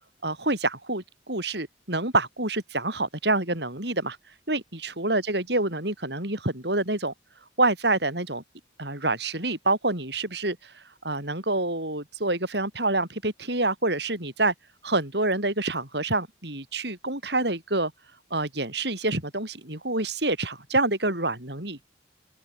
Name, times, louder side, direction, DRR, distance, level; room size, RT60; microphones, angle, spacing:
voice 1, 0.2-4.2 4.5-7.1 7.6-8.4 8.8-10.7 11.0-14.5 14.8-17.9 18.3-21.8, right 2 dB, 60° right, 7.7 m, -27 dB
open air
head